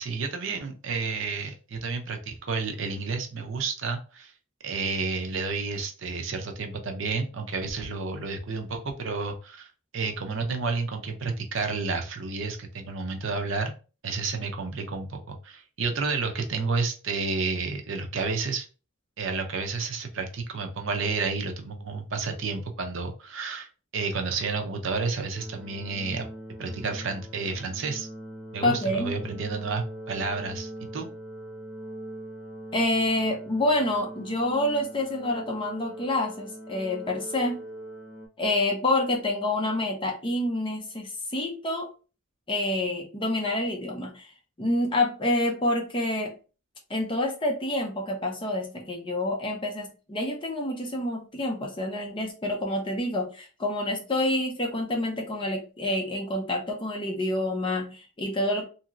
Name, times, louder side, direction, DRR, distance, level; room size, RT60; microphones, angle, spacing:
voice 1, 0.0-4.3 4.6-9.7 9.9-13.7 14.0-18.7 19.2-26.3 26.6-28.1 28.5-31.1, right 4 dB, 60° right, 4 dB, 0.6 m, -31 dB
sound 1, 25.3-38.3, right 1 dB, 10° right, 1.6 m, -42 dB
voice 2, 28.6-29.1 32.7-37.6 38.4-41.9 42.5-44.3 44.6-46.3 46.9-58.6, left 1 dB, 25° left, 1 dB, 0.6 m, -27 dB
2.9 x 2.8 x 2.5 m, 0.35 s
head